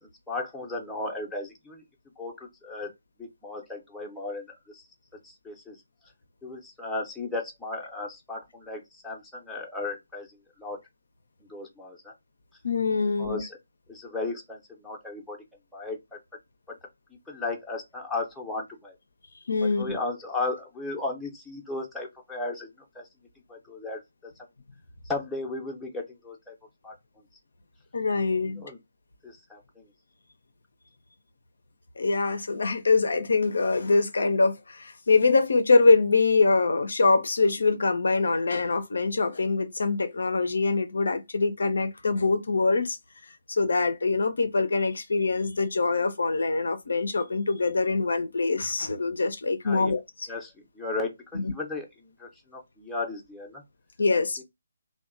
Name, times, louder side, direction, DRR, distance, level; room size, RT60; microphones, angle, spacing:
voice 1, 0.0-1.8 2.2-2.9 3.2-4.8 5.2-5.8 6.4-10.8 11.4-12.1 13.2-13.6 13.9-15.4 15.7-16.2 16.7-16.8 17.3-19.0 19.8-22.7 22.9-23.1 23.5-24.3 25.0-26.5 26.8-26.9 28.6-28.8 29.2-29.9 49.6-50.0 50.3-53.6 54.1-54.2, left 3 dB, 5° left, 0.6 m, -35 dB
voice 2, 12.6-13.4 19.5-20.0 27.9-28.6 32.0-43.0 43.2-50.3 51.3-51.5 54.0-54.4, left 3 dB, 65° left, 0.4 m, -24 dB
2.8 x 2.1 x 2.4 m
figure-of-eight pair, 145°, 0 cm